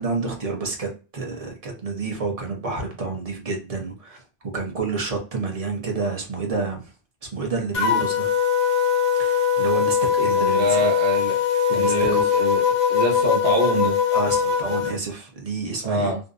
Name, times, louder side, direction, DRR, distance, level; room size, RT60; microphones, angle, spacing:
voice 1, 0.0-4.2 4.5-6.8 7.3-8.3 9.2-10.9 11.7-12.2 14.1-16.1, right 4 dB, 40° right, 1 dB, 0.7 m, -29 dB
sound 1, 7.7-14.9, left 7 dB, 90° left, 1.0 m, -21 dB
voice 2, 10.4-11.4 11.7-12.6 12.9-14.0 15.8-16.2, right 1 dB, 55° right, -1 dB, 1.2 m, -25 dB
2.6 x 2.1 x 2.4 m, 0.34 s
omnidirectional pair, 1.2 m